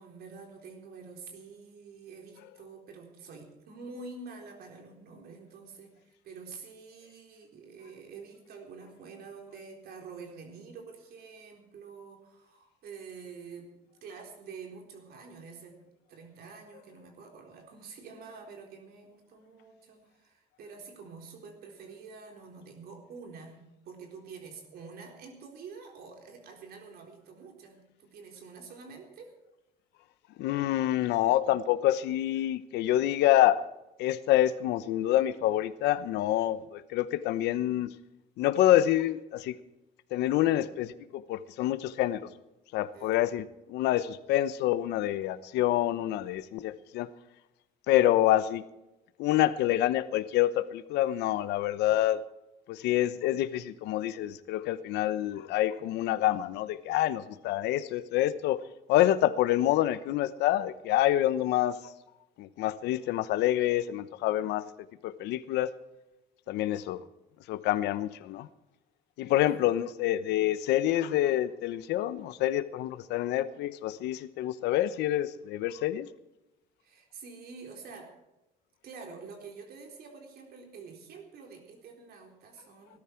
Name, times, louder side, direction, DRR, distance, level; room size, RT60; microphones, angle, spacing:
voice 1, 0.0-13.7 14.0-15.8 16.1-29.3 42.9-43.2 66.5-66.8 69.3-69.7 76.8-78.1 78.8-83.0, right 4 dB, 65° right, 2 dB, 4.0 m, -47 dB
voice 2, 30.4-33.6 34.0-37.9 38.4-39.6 40.1-42.3 42.7-47.1 47.9-48.6 49.2-52.2 52.7-58.6 58.9-61.8 62.4-64.6 65.0-65.7 66.5-67.0 67.5-68.5 69.2-76.1, left 13 dB, 85° left, 14 dB, 0.9 m, -27 dB
19.0 x 13.0 x 4.6 m, 0.94 s
cardioid pair, 110°, 17 cm